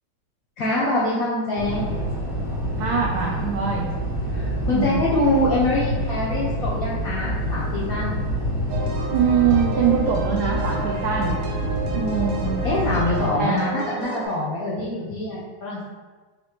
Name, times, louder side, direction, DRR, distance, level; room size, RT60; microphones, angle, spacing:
voice 1, 0.6-2.0 4.3-8.2 12.6-15.8, left 1 dB, 65° left, -6 dB, 0.9 m, -24 dB
sound 1, 1.6-13.2, equal, 20° left, 0.6 m, -27 dB
voice 2, 2.8-3.9 4.7-5.0 9.1-11.4 11.9-12.6 13.3-13.6, right 7 dB, 85° right, -1 dB, 0.8 m, -23 dB
sound 2, 8.7-14.3, right 3 dB, 65° right, 1.3 m, -32 dB
4.1 x 2.8 x 4.3 m, 1.3 s
omnidirectional pair, 2.3 m